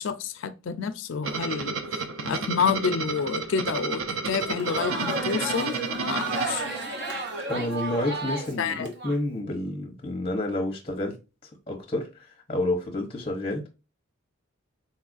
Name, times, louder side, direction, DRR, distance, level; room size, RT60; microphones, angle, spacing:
voice 1, 0.0-1.7 2.2-6.6 8.6-8.9, left 6 dB, 65° left, 0.4 m, -29 dB
sound 1, 1.2-7.3, right 4 dB, 90° right, 0.5 m, -32 dB
Crowd, 4.3-9.2, right 2 dB, 55° right, 0.8 m, -32 dB
voice 2, 7.5-11.2 11.7-13.7, left 1 dB, 25° left, 0.6 m, -29 dB
4.1 x 2.4 x 2.4 m
head